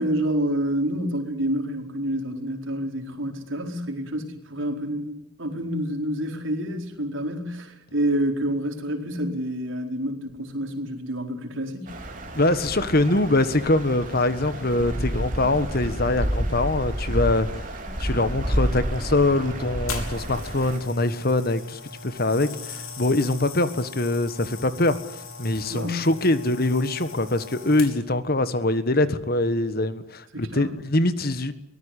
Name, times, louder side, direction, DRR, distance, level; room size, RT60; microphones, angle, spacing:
voice 1, 0.0-11.9 25.7-26.0 30.3-30.7, right 1 dB, 70° right, 3 dB, 4.7 m, -28 dB
sound 1, 11.9-20.8, equal, 40° right, 3.9 m, -30 dB
voice 2, 12.3-17.5 18.0-31.5, left 2 dB, 45° left, 13 dB, 1.5 m, -23 dB
Bowed string instrument, 17.8-21.7, left 1 dB, 5° right, 2.5 m, -42 dB
sound 2, 19.9-28.2 28.9-29.2, left 4 dB, 80° left, 5.4 m, -39 dB
24.0 x 19.0 x 10.0 m, 0.80 s
head